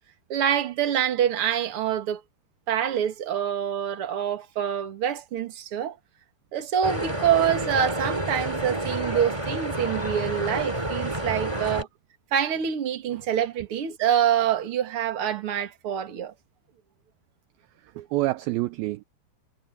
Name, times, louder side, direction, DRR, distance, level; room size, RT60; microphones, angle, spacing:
voice 1, 0.3-2.2 2.7-6.0 6.5-11.9 12.3-16.3, right 9 dB, 45° right, 2.1 m, -26 dB
sound 1, 6.8-11.8, right 1 dB, 10° right, 2.9 m, -29 dB
voice 2, 11.1-11.8 18.0-19.0, right 18 dB, 80° right, 2.1 m, -29 dB
omnidirectional pair, 4.9 m